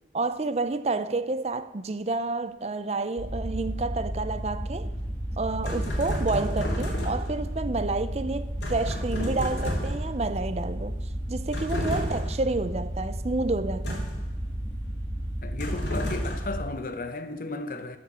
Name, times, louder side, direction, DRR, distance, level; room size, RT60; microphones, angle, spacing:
voice 1, 0.1-4.9 5.4-11.0 11.3-14.1, right 3 dB, 35° right, 0.5 m, -29 dB
sound 1, 3.2-16.7, right 1 dB, 10° left, 2.9 m, -33 dB
sound 2, 5.6-7.4 8.6-10.2 11.5-12.4 13.8-14.3 15.6-16.5, equal, 65° left, 3.0 m, -31 dB
voice 2, 15.4-18.0, left 2 dB, 50° left, 0.8 m, -34 dB
13.5 x 5.2 x 6.8 m
head